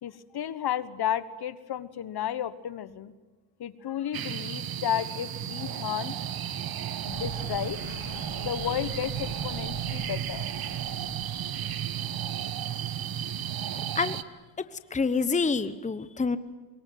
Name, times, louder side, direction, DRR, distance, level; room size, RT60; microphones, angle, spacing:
voice 1, 0.0-3.1 3.6-6.1 7.1-7.8 8.4-10.5, left 10 dB, 50° left, 15 dB, 1.4 m, -32 dB
sound 1, 4.1-14.2, right 10 dB, 50° right, 1.3 m, -33 dB
sound 2, 7.1-14.1, left 8 dB, 70° left, 3.3 m, -47 dB
voice 2, 14.9-16.4, left 4 dB, 15° left, 13 dB, 1.1 m, -26 dB
24.0 x 22.0 x 9.4 m, 1.3 s
cardioid pair, 95°, 47 cm